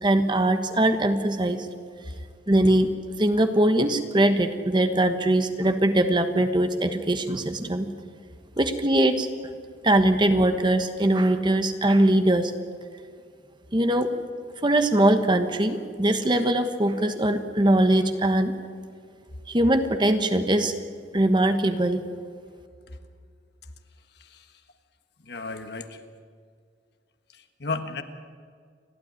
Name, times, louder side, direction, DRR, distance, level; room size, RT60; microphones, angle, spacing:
voice 1, 0.0-1.7 2.5-2.9 3.2-7.9 8.6-9.3 9.8-12.5 13.7-14.1 14.6-18.5 19.5-20.7 21.1-22.0, right 1 dB, 25° right, 8 dB, 1.2 m, -21 dB
voice 2, 25.2-26.0 27.3-28.0, left 3 dB, 60° left, 7 dB, 1.5 m, -34 dB
29.5 x 12.5 x 9.8 m, 2.1 s
head